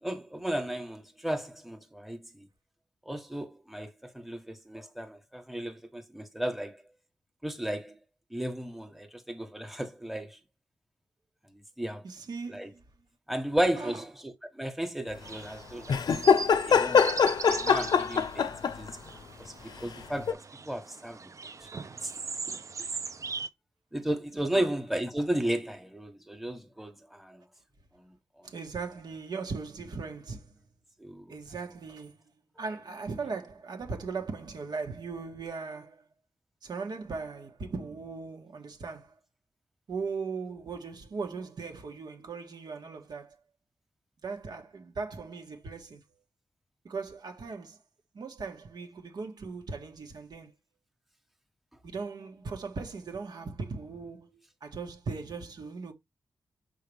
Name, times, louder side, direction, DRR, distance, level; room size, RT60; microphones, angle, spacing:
voice 1, 0.0-2.5 3.0-6.8 7.4-7.9 8.3-10.4 11.8-12.0 12.5-12.7 13.3-16.0 16.6-18.5 18.8-18.9 19.4-22.1 23.9-27.5 28.0-28.5 31.0-31.4, right 1 dB, ahead, 1.3 m, -34 dB
voice 2, 12.0-12.8 13.7-14.0 24.5-24.7 28.4-30.5 31.3-32.3 32.6-36.0 36.6-39.1 39.9-43.4 44.2-46.0 46.8-47.8 48.1-50.5 51.8-54.3 54.6-55.9, right 4 dB, 75° right, 1.6 m, -38 dB
sound 1, 15.2-23.5, right 4 dB, 45° right, 0.6 m, -40 dB
sound 2, 15.9-18.9 20.3-20.4, left 6 dB, 75° left, 0.6 m, -23 dB
5.8 x 4.7 x 3.5 m
wide cardioid pair, 80°, 7 cm